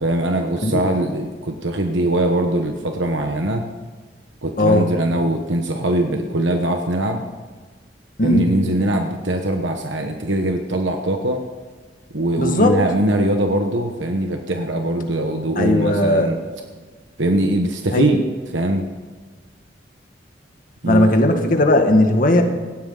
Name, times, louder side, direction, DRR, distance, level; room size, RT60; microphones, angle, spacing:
voice 1, 0.0-3.7 4.4-7.2 8.2-11.4 12.1-16.4 17.2-18.2 18.5-18.9 20.8-21.1, right 1 dB, 80° right, 4 dB, 1.2 m, -21 dB
voice 2, 4.6-4.9 8.2-8.5 12.4-12.8 15.6-16.3 17.9-18.1 20.8-22.4, left 1 dB, 50° left, 4 dB, 1.9 m, -17 dB
18.0 x 15.5 x 3.9 m, 1.4 s
head